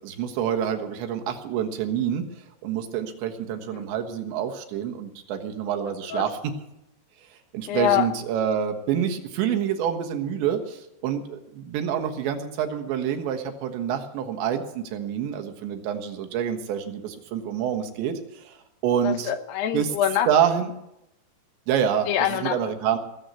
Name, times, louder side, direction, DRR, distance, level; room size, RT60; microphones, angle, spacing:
voice 1, 0.0-2.3 2.6-6.4 7.5-18.6 18.8-19.3 19.7-19.9 20.3-20.7 21.7-22.1 22.4-23.0, right 8 dB, 85° right, 6 dB, 3.6 m, -27 dB
voice 2, 7.7-8.1 19.0-20.3 22.1-22.6, left 10 dB, 75° left, 8 dB, 3.0 m, -25 dB
20.0 x 7.9 x 8.3 m, 0.84 s
omnidirectional pair, 5.0 m